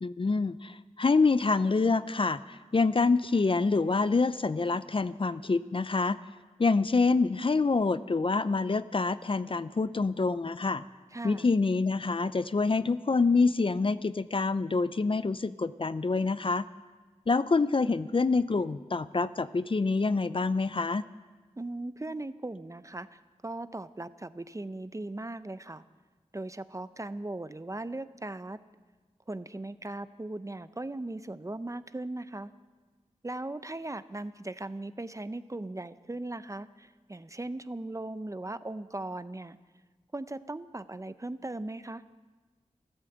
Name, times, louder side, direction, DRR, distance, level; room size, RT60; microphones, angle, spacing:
voice 1, 0.0-6.2 6.6-10.8 11.2-16.7 17.3-21.0, left 4 dB, 45° left, 15 dB, 0.5 m, -26 dB
voice 2, 11.1-11.5 21.6-25.8 26.3-28.6 29.3-32.5 33.2-39.6 40.1-42.0, right 2 dB, 25° right, 13 dB, 0.6 m, -38 dB
13.5 x 13.5 x 7.9 m, 1.3 s
wide cardioid pair, 55°, 12 cm